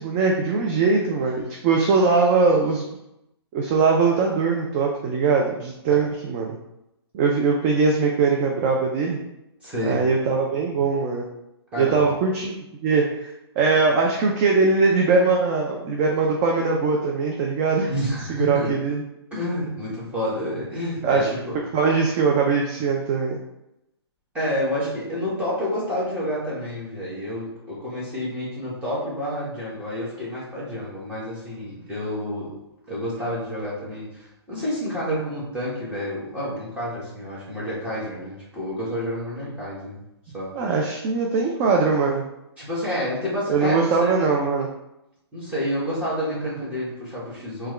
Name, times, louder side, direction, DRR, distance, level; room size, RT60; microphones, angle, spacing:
voice 1, 0.0-2.9 3.5-6.6 7.1-9.2 9.8-11.3 11.8-12.6 12.8-17.9 18.3-19.0 21.0-21.3 21.7-23.4 40.6-42.2 43.5-44.7, right 4 dB, 30° right, 0 dB, 0.4 m, -21 dB
voice 2, 9.6-10.1 11.7-12.0 17.9-18.7 19.3-21.5 24.3-32.5 32.9-40.0 40.3-40.5 42.6-44.1 45.3-47.7, equal, 10° right, -9 dB, 1.3 m, -29 dB
3.4 x 2.3 x 3.2 m, 0.88 s
hypercardioid pair, 135°, 14 cm